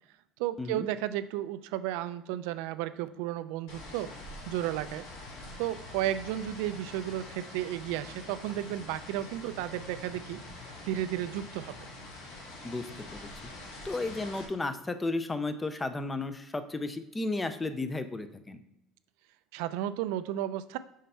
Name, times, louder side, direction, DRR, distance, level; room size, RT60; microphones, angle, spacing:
voice 1, 0.4-4.1 4.5-5.1 5.6-11.8 19.5-20.8, right 13 dB, 80° right, 13 dB, 0.4 m, -33 dB
sound 1, 3.7-14.5, left 2 dB, 80° left, 2.9 m, -45 dB
voice 2, 12.6-13.3 13.8-18.6, left 2 dB, 10° left, 10 dB, 0.4 m, -33 dB
6.4 x 4.5 x 5.5 m, 0.85 s
cardioid pair, 180°, 0 cm